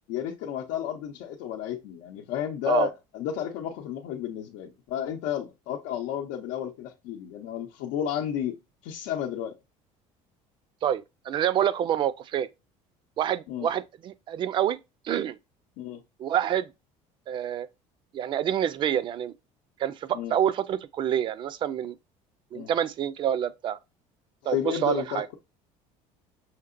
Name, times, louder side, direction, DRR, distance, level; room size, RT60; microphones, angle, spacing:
voice 1, 0.1-8.6 8.8-9.5 13.5-13.7 15.8-16.0 20.1-20.3 22.5-22.7 24.4-25.3, left 10 dB, 90° left, 0.7 m, -32 dB
voice 2, 10.8-12.5 13.2-14.8 15.0-15.4 16.2-16.7 17.3-17.7 18.1-19.3 19.8-22.0 22.5-23.8 24.5-25.3, right 10 dB, 35° right, 0.3 m, -27 dB
5.8 x 2.8 x 2.4 m
cardioid pair, 150°, 14 cm